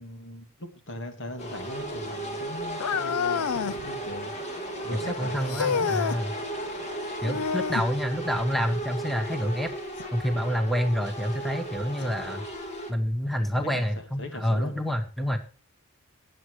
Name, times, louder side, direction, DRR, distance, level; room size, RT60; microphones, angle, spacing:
voice 1, 0.0-6.0 7.3-7.5 13.5-14.7, left 1 dB, 60° left, 2.5 m, -40 dB
sound 1, 1.4-12.9, right 1 dB, 30° left, 2.7 m, -35 dB
sound 2, 2.8-3.8 5.5-6.2 7.2-7.9 10.0-10.1 10.9-11.0 12.0-12.1, left 6 dB, 85° left, 0.5 m, -28 dB
voice 2, 5.1-6.3 7.2-9.7 10.1-12.4 12.9-15.4, equal, ahead, 1.2 m, -28 dB
18.5 x 7.7 x 3.1 m
head